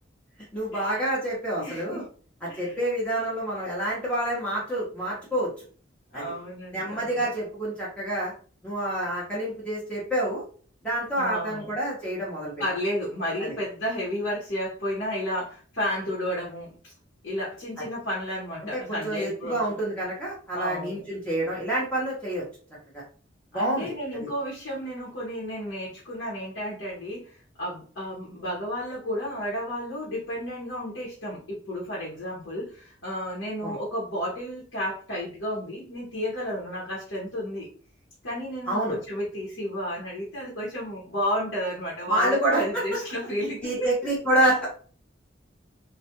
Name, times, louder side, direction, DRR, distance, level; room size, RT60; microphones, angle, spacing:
voice 1, 0.5-2.0 2.4-5.5 6.1-6.2 6.7-8.3 8.6-10.4 10.8-12.5 13.4-13.6 18.7-22.4 22.9-23.0 23.5-23.9 24.2-24.3 33.6-33.7 38.7-39.0 42.1-42.8 43.6-44.7, right 1 dB, 5° left, -7 dB, 0.7 m, -27 dB
voice 2, 1.6-2.0 2.5-2.8 6.1-7.3 11.2-11.7 12.6-16.9 17.2-19.6 20.5-21.1 23.5-37.7 38.2-43.9, equal, 75° left, -5 dB, 0.8 m, -32 dB
2.3 x 2.1 x 2.8 m, 0.42 s
head